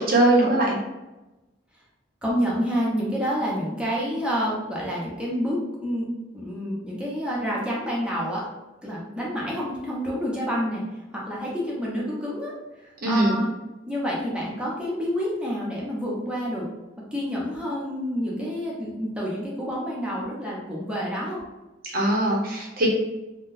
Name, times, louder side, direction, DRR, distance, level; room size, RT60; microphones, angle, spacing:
voice 1, 0.1-0.8 13.0-13.5 21.9-22.9, right 1 dB, 50° right, -3 dB, 0.9 m, -21 dB
voice 2, 2.2-6.1 6.3-8.4 8.8-10.8 11.1-12.5 12.8-13.5 13.9-16.7 17.1-21.4, equal, 5° right, -5 dB, 0.8 m, -28 dB
3.7 x 2.2 x 2.6 m, 1.0 s
head